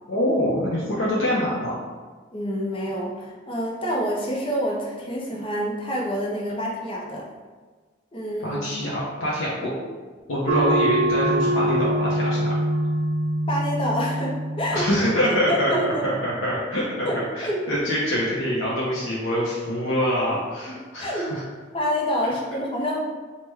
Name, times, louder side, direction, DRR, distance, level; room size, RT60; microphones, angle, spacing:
voice 1, 0.1-1.7 8.4-9.7 10.3-12.5 14.7-17.1 17.3-21.4, equal, 90° left, -7 dB, 0.6 m, -25 dB
voice 2, 2.3-7.2 8.1-8.6 13.5-14.9 15.5-16.0 17.1-17.6 21.0-21.3 21.7-23.0, equal, 30° left, -3 dB, 0.5 m, -27 dB
sound 1, 10.5-15.6, right 1 dB, 70° right, 0.4 m, -24 dB
3.0 x 2.1 x 3.3 m, 1.4 s
head